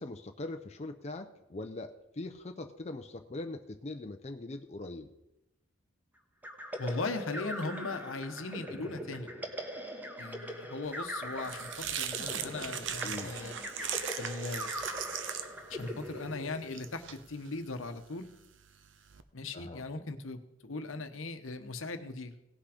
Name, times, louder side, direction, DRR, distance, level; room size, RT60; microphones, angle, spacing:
voice 1, 0.0-5.1 13.0-13.3 19.5-19.8, left 2 dB, 30° left, 5 dB, 0.6 m, -41 dB
sound 1, 6.4-17.0, equal, 10° right, 1.2 m, -41 dB
voice 2, 6.8-9.3 10.2-11.7 12.0-13.5 14.2-14.7 15.7-18.3 19.3-22.3, left 3 dB, 75° left, 8 dB, 1.0 m, -38 dB
sound 2, 10.9-19.2, right 9 dB, 65° right, 0.7 m, -40 dB
17.5 x 6.0 x 5.0 m, 0.88 s
head